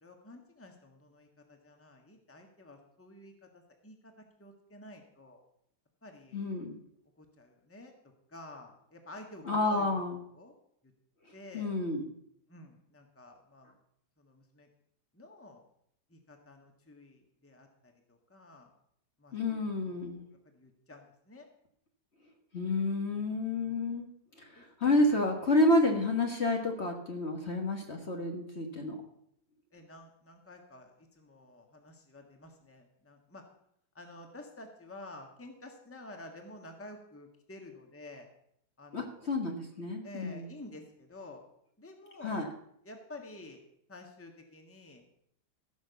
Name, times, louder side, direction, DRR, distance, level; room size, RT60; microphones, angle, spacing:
voice 1, 0.0-4.1 4.4-5.4 6.0-6.5 7.2-10.0 10.3-10.5 10.8-10.9 11.3-11.7 12.5-13.7 14.2-14.7 15.1-15.6 16.1-18.7 19.2-19.6 19.8-21.5 23.5-24.0 24.5-24.6 29.7-33.4 33.9-38.3 38.8-39.3 40.0-41.4 41.8-42.4 42.8-43.6 43.9-45.0, left 2 dB, 10° left, 4 dB, 1.5 m, -51 dB
voice 2, 6.3-6.7 9.4-10.2 11.5-12.1 19.3-20.3 22.5-24.1 24.4-29.0 38.9-40.5 42.2-42.5, left 2 dB, 40° left, 2 dB, 1.6 m, -30 dB
16.5 x 6.3 x 6.9 m, 0.72 s
omnidirectional pair, 1.8 m